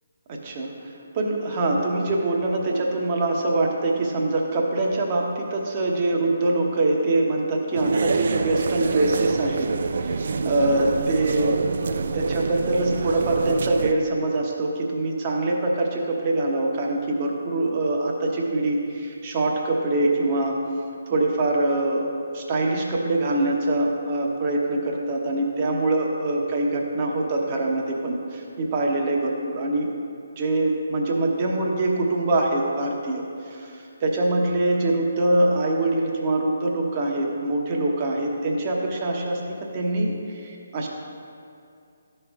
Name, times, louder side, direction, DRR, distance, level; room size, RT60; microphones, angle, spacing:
voice 1, 0.3-20.6 21.1-29.9 30.4-40.9, right 2 dB, 30° right, 0 dB, 1.0 m, -24 dB
sound 1, 7.7-13.9, right 4 dB, 50° right, 0.3 m, -26 dB
14.0 x 5.4 x 2.4 m, 2.5 s
figure-of-eight pair, 140°, 0 cm